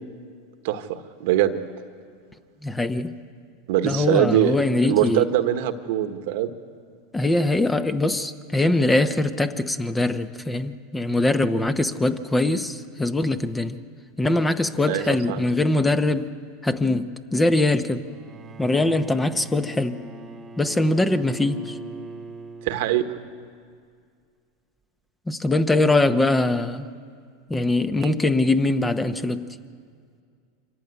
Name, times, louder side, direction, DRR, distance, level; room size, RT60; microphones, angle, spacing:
voice 1, 0.6-1.5 3.7-4.6 4.8-6.5 14.9-15.4 22.6-23.0 28.0-28.1, right 12 dB, 70° right, 1.3 m, -22 dB
voice 2, 2.6-3.1 3.8-5.3 7.1-13.8 14.2-16.3 16.6-18.0 18.6-20.0 20.6-21.8 25.3-26.8 27.5-29.5, left 2 dB, 10° left, 1.0 m, -22 dB
Bowed string instrument, 18.0-23.3, right 3 dB, 20° right, 1.5 m, -41 dB
25.0 x 14.5 x 9.8 m
supercardioid pair, 115°, 0 cm